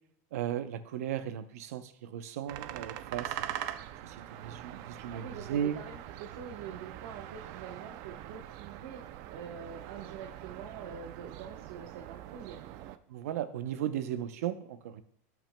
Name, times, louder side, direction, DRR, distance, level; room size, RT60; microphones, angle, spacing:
voice 1, 0.3-3.6 4.0-4.2 4.4-5.8 13.1-15.0, right 10 dB, 85° right, 11 dB, 0.7 m, -36 dB
sound 1, 2.5-13.0, right 12 dB, 45° right, 0.4 m, -43 dB
voice 2, 5.1-9.0 9.3-12.6, right 7 dB, 65° right, 2 dB, 1.0 m, -45 dB
15.5 x 6.0 x 2.2 m, 0.70 s
supercardioid pair, 160°, 8 cm